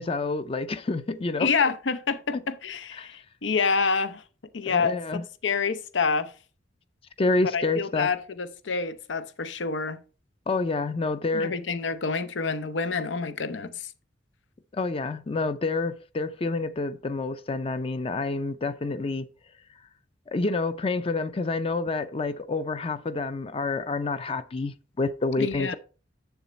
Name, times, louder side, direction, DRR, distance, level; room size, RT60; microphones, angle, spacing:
voice 1, 0.0-1.5 2.3-2.4 3.0-3.1 4.7-5.2 7.2-8.1 10.5-11.6 14.7-19.3 20.3-25.7, left 3 dB, 30° left, 0.5 m, -28 dB
voice 2, 1.4-4.2 4.5-6.3 7.5-10.0 11.3-13.9 25.4-25.7, left 5 dB, 85° left, 0.7 m, -28 dB
7.1 x 7.0 x 4.1 m
head